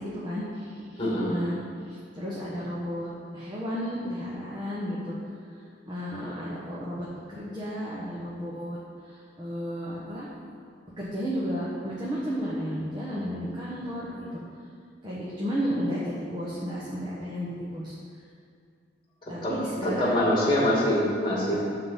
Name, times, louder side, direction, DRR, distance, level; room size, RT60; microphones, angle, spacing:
voice 1, 0.0-1.6 1.9-5.2 5.9-8.8 9.0-10.3 11.0-14.4 15.0-17.9 19.3-20.1 21.5-21.6, equal, 25° right, -7 dB, 1.3 m, -33 dB
voice 2, 1.0-1.4 19.4-19.5 19.8-21.6, left 1 dB, 25° left, -4 dB, 2.6 m, -24 dB
11.5 x 4.0 x 7.5 m, 2.2 s
head